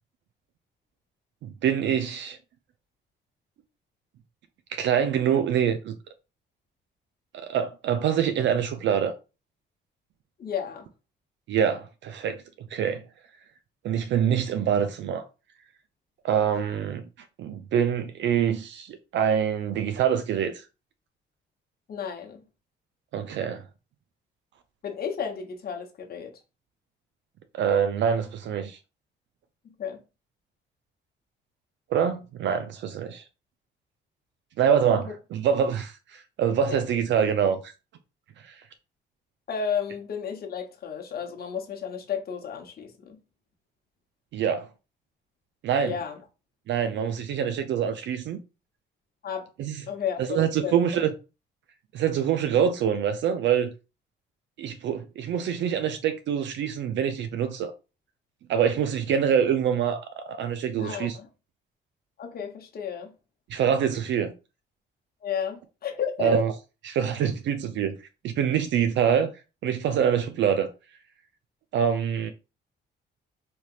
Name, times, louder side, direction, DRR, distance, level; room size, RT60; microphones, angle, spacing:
voice 1, 1.4-2.4 4.7-5.9 7.3-9.1 11.5-12.4 12.7-13.0 13.8-15.2 16.2-17.1 17.4-20.6 23.1-23.6 27.5-28.8 31.9-33.2 34.6-37.7 38.4-38.6 44.3-44.7 45.6-45.9 46.7-48.4 49.6-49.8 50.2-51.1 51.9-53.7 54.6-57.7 58.5-61.2 63.5-64.3 66.2-66.5 66.8-68.0 68.2-69.3 69.6-70.7 71.7-72.3, right 8 dB, 65° right, 0.4 m, -25 dB
voice 2, 10.4-10.9 21.9-22.4 24.8-26.3 29.6-30.0 36.7-36.8 39.5-43.2 45.8-46.2 49.2-49.5 49.9-50.8 60.8-61.3 62.2-63.1 65.2-66.3, left 7 dB, 50° left, 0.9 m, -33 dB
3.3 x 2.8 x 2.4 m
cardioid pair, 90°, 20 cm